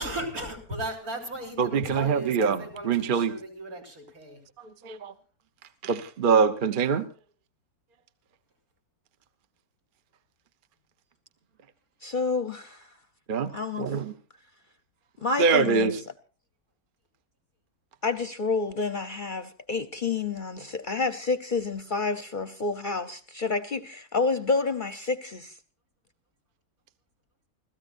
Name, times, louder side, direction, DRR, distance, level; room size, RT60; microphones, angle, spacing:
voice 1, 0.0-4.4, right 1 dB, 80° right, 1 dB, 4.2 m, -36 dB
voice 2, 1.6-2.6 2.8-3.3 4.8-5.1 5.8-7.0 13.3-13.5 13.8-14.1 15.4-15.9, right 5 dB, 40° right, 10 dB, 0.9 m, -23 dB
voice 3, 12.0-12.9 13.5-14.0 15.2-16.0 18.0-25.6, left 4 dB, 40° left, 11 dB, 0.8 m, -29 dB
29.0 x 14.0 x 2.6 m, 0.36 s
omnidirectional pair, 1.5 m